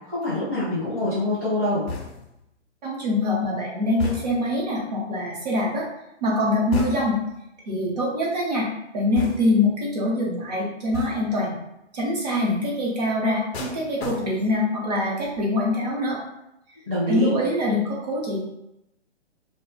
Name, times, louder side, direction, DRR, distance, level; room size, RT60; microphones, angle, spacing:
voice 1, 0.1-1.8 16.9-17.3, left 1 dB, 10° right, -18 dB, 0.4 m, -25 dB
sound 1, 1.9-2.4 4.0-4.6 6.7-7.3 9.2-9.7 10.9-11.4 13.5-14.7 15.0-15.4, left 4 dB, 60° left, 0.5 m, -33 dB
voice 2, 2.8-5.9 6.2-7.2 7.7-8.7 8.9-11.5 11.9-16.2 17.1-18.4, left 1 dB, 35° right, -4 dB, 0.8 m, -24 dB
2.3 x 2.1 x 3.1 m, 0.85 s
hypercardioid pair, 165°, 35 cm